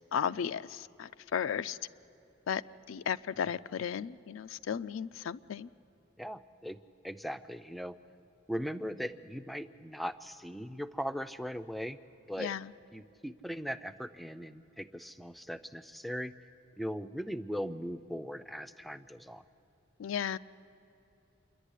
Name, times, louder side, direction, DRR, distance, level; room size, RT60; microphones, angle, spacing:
voice 1, 0.1-1.8 2.5-2.6 2.9-5.7 12.4-12.7 20.0-20.4, left 8 dB, 85° left, 13 dB, 0.4 m, -34 dB
voice 2, 6.2-6.8 7.0-8.0 8.5-12.0 12.3-12.5 12.9-16.3 16.8-19.4, equal, ahead, 11 dB, 0.4 m, -39 dB
27.5 x 11.0 x 9.9 m, 2.9 s
head